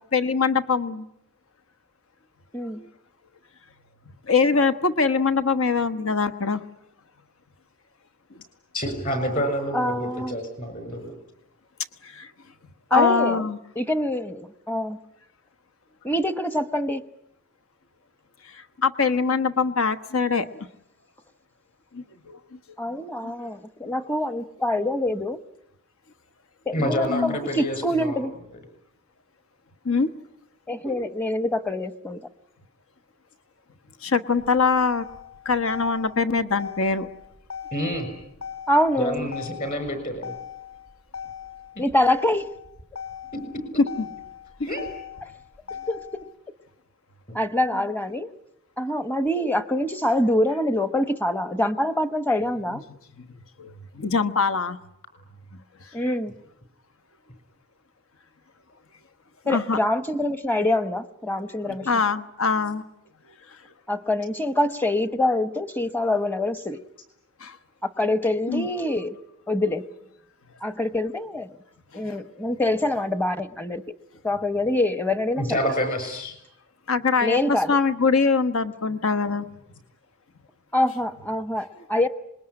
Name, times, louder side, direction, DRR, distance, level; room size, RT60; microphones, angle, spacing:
voice 1, 0.1-1.1 4.3-6.6 12.0-12.3 12.9-13.6 18.4-20.5 21.9-22.4 23.2-23.3 27.1-27.4 29.8-30.1 34.0-35.1 35.4-37.1 53.2-53.3 53.6-54.8 59.5-59.8 61.8-62.8 67.4-67.6 68.5-68.7 72.0-72.1 76.9-77.4 77.7-79.5, left 5 dB, 70° left, 12 dB, 1.3 m, -23 dB
voice 2, 8.7-11.1 26.7-28.2 37.7-38.1 39.0-40.3 43.3-43.4 44.7-44.8 47.3-47.4 75.4-76.3, equal, 40° left, 9 dB, 6.7 m, -28 dB
voice 3, 9.7-10.4 12.9-13.4 13.8-15.0 16.0-17.0 22.8-25.4 26.7-28.3 30.7-32.2 38.7-39.3 41.8-42.5 45.9-46.1 47.3-48.3 48.8-52.8 55.9-56.3 59.5-61.9 63.9-66.8 67.8-69.2 69.5-69.8 70.6-71.6 71.9-74.0 74.2-75.6 77.2-77.8 80.7-82.1, left 1 dB, 10° left, 12 dB, 0.9 m, -25 dB
Motor vehicle (road), 34.3-46.3, left 7 dB, 90° left, 3.3 m, -39 dB
26.0 x 21.5 x 9.9 m, 0.82 s
head